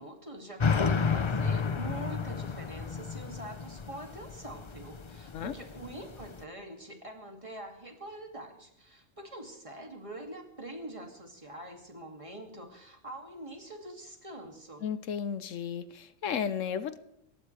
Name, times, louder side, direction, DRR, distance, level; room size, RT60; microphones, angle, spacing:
voice 1, 0.0-14.8, right 1 dB, 25° right, 2 dB, 2.5 m, -44 dB
sound 1, 0.6-6.4, left 5 dB, 35° left, 0.5 m, -32 dB
voice 2, 14.8-17.0, left 7 dB, 75° left, 13 dB, 1.1 m, -34 dB
28.5 x 14.5 x 3.3 m, 0.78 s
omnidirectional pair, 1.3 m